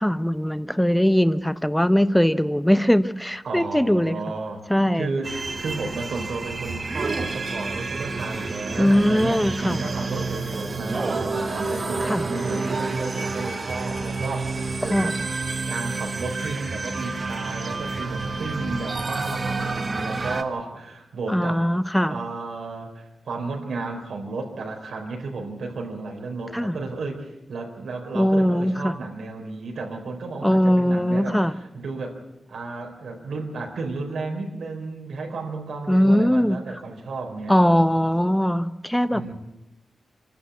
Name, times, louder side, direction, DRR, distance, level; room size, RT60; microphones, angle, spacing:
voice 1, 0.0-4.2 4.7-5.1 8.8-9.8 12.0-12.2 14.9-15.1 21.3-22.1 26.5-26.8 28.1-28.9 30.4-31.5 35.9-36.8 37.5-39.3, equal, 5° left, 13 dB, 0.9 m, -20 dB
voice 2, 3.4-4.6 4.9-15.2 15.7-21.6 22.0-32.2 32.5-37.7 39.1-39.3, right 3 dB, 85° right, 2 dB, 4.1 m, -33 dB
sound 1, 5.2-20.4, right 3 dB, 45° right, 1.5 m, -29 dB
27.0 x 12.5 x 8.4 m, 0.94 s
wide cardioid pair, 95°, 0 cm